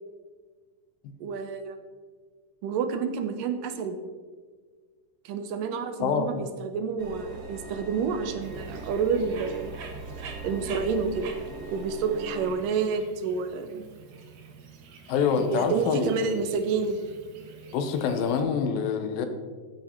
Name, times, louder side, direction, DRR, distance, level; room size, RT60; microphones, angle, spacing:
voice 1, 1.2-1.8 2.6-4.0 5.3-9.7 10.4-11.3 11.7-13.9 15.4-17.0, right 5 dB, 80° right, 8 dB, 2.5 m, -29 dB
voice 2, 6.0-6.5 15.1-16.3 17.7-19.3, left 6 dB, 90° left, 8 dB, 2.8 m, -26 dB
sound 1, 7.0-12.5, right 3 dB, 45° right, 1.4 m, -41 dB
Bird, 8.4-18.4, right 5 dB, 60° right, 2.4 m, -47 dB
14.5 x 8.3 x 4.5 m, 1.5 s
omnidirectional pair, 4.0 m